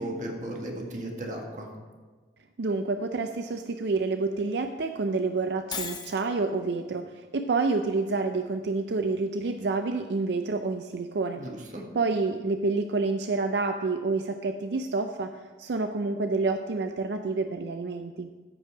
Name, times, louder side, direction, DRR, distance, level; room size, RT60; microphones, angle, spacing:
voice 1, 0.0-1.7 11.4-11.8, right 1 dB, 45° right, 1 dB, 1.6 m, -35 dB
voice 2, 2.6-11.4 11.9-18.3, right 3 dB, 75° right, 7 dB, 0.4 m, -28 dB
Shatter, 5.7-6.3, left 6 dB, 25° left, 0.6 m, -35 dB
14.0 x 5.4 x 4.9 m, 1.4 s
head